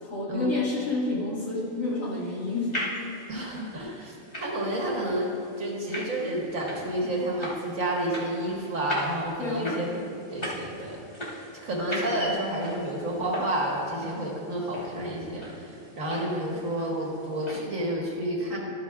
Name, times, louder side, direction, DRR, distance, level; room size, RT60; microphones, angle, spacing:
voice 1, 0.0-2.8 9.4-9.8, left 2 dB, 70° left, -6 dB, 2.4 m, -29 dB
sound 1, 1.6-17.6, equal, 30° left, 2.2 m, -40 dB
voice 2, 3.3-5.3 5.6-9.9 10.3-18.6, right 1 dB, 65° right, -3 dB, 2.0 m, -30 dB
12.5 x 10.0 x 2.4 m, 2.6 s
omnidirectional pair, 1.5 m